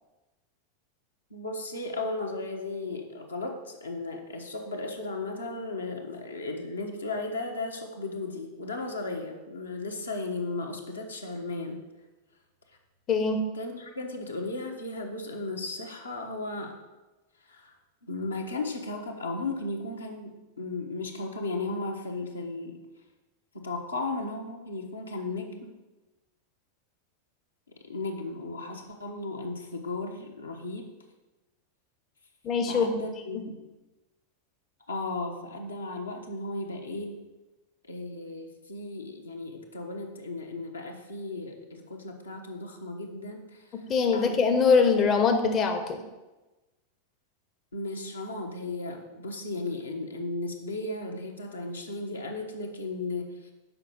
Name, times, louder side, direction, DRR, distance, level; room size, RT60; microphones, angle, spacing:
voice 1, 1.3-11.8 13.5-16.7 17.5-17.7 18.0-22.8 23.5-25.7 27.8-30.9 32.7-33.6 34.9-37.2 37.8-43.8 44.1-44.4 47.7-53.5, left 2 dB, 80° left, 1 dB, 1.0 m, -35 dB
voice 2, 13.1-13.4 32.4-33.0 33.3-33.4 43.9-46.0, left 5 dB, 30° left, 5 dB, 0.7 m, -23 dB
6.7 x 4.8 x 6.0 m, 1.1 s
figure-of-eight pair, 90°, 0 cm